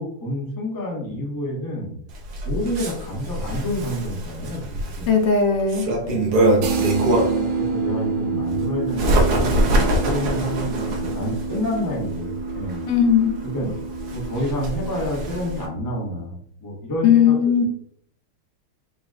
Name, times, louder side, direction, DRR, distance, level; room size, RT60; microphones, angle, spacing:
voice 1, 0.0-2.0 2.4-5.1 6.0-12.8 13.4-13.7 14.1-17.3, equal, 20° left, -3 dB, 0.6 m, -29 dB
Bird, 2.1-7.5 8.0-15.7, right 1 dB, 65° right, 1.1 m, -25 dB
voice 2, 5.1-5.9 12.9-13.3 17.0-17.6, left 7 dB, 75° left, 3 dB, 1.2 m, -17 dB
sound 1, 6.6-16.2, right 4 dB, 80° right, 1.3 m, -28 dB
3.9 x 2.1 x 3.6 m, 0.64 s
omnidirectional pair, 2.2 m